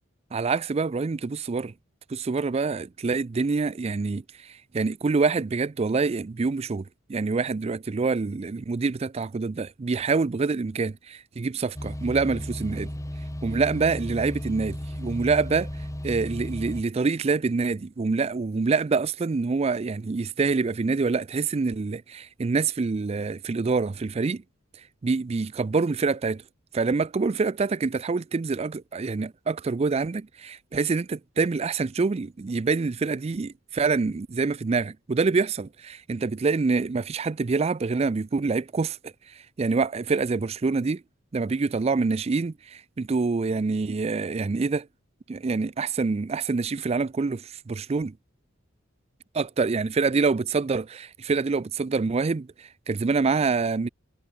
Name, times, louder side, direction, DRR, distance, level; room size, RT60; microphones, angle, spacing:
voice 1, 0.3-1.7 2.1-6.8 7.1-12.9 13.4-15.7 16.0-24.4 25.0-26.4 26.7-39.1 39.6-41.0 41.3-44.9 45.3-48.1 49.4-53.9, right 4 dB, 30° right, 0.4 m, -26 dB
sound 1, 11.7-16.8, equal, 15° left, 1.3 m, -34 dB
head